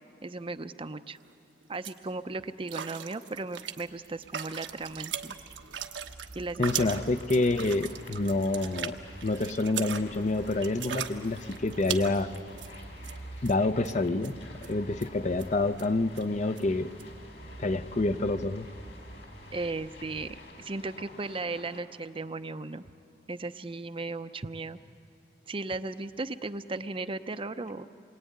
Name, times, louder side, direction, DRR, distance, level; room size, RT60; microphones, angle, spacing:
voice 1, 0.2-1.2 1.7-5.4 6.4-7.0 19.5-22.9 23.3-24.8 25.5-27.9, right 3 dB, 30° right, 10 dB, 0.6 m, -36 dB
sound 1, 1.2-1.3 1.6-2.0 2.7-13.2 13.4-13.6 13.8-14.3 14.6-14.7 15.0-15.1 15.4-15.5 15.8-15.9 16.1-16.2 16.6-16.7 17.0-17.1, right 8 dB, 85° right, 1.2 m, -39 dB
sound 2, 4.0-20.3, right 1 dB, 85° left, 2.7 m, -48 dB
voice 2, 6.6-12.3 13.4-14.3 14.7-16.9 17.6-18.7, left 2 dB, 40° left, 11 dB, 0.7 m, -28 dB
sound 3, 6.8-21.8, left 2 dB, 65° left, 4.4 m, -50 dB
28.0 x 22.5 x 9.4 m, 2.7 s
head